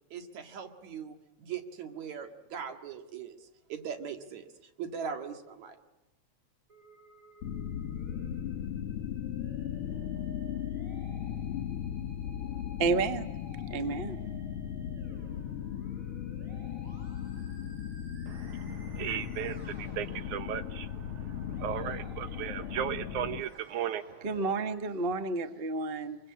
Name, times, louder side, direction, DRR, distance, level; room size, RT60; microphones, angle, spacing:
voice 1, 0.1-5.8, right 7 dB, 70° right, 3.3 m, -40 dB
Musical instrument, 6.7-24.7, right 2 dB, 25° right, 7.2 m, -55 dB
sound 1, 7.4-23.4, left 9 dB, 60° left, 1.7 m, -37 dB
voice 2, 12.8-13.3 13.7-14.2 24.2-26.2, right 3 dB, 55° right, 0.6 m, -30 dB
voice 3, 18.3-24.3, right 9 dB, 90° right, 2.6 m, -36 dB
25.0 x 23.5 x 8.6 m
omnidirectional pair, 3.3 m